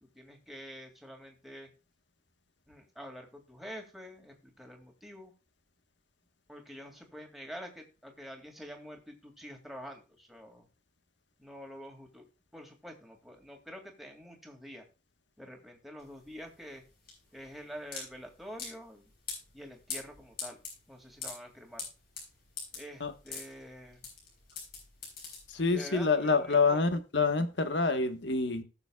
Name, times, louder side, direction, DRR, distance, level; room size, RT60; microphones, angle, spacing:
voice 1, 0.0-1.7 2.7-5.3 6.5-10.7 11.4-12.3 12.5-14.8 15.4-16.8 17.3-19.1 19.5-20.6 20.9-21.9 22.7-24.0 25.7-26.8, equal, ahead, 2.2 m, -47 dB
sound 1, 16.0-25.9, left 5 dB, 50° left, 6.4 m, -43 dB
voice 2, 25.5-28.6, left 4 dB, 75° left, 1.3 m, -27 dB
19.0 x 7.0 x 2.3 m
head